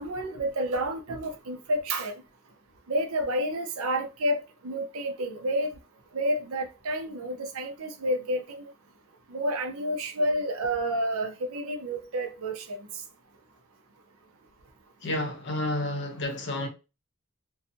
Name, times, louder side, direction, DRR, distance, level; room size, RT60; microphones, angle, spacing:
voice 1, 0.0-2.1 2.9-4.4 4.6-5.7 6.1-8.7 9.3-12.6, right 1 dB, 75° right, 0.6 m, -29 dB
voice 2, 15.0-16.7, left 1 dB, 55° left, 0.7 m, -30 dB
2.7 x 2.3 x 2.6 m
head